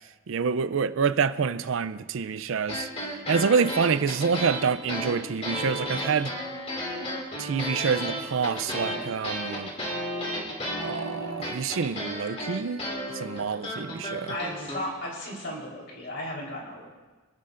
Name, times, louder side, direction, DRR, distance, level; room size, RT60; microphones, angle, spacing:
voice 1, 0.3-2.9 3.3-6.3 7.4-9.7 10.8-12.8 13.1-14.3, right 5 dB, 65° right, 0.4 m, -27 dB
sound 1, 2.7-14.8, equal, 30° left, 2.4 m, -33 dB
voice 2, 14.3-16.9, left 1 dB, 55° left, 3.8 m, -35 dB
26.5 x 12.0 x 2.5 m
head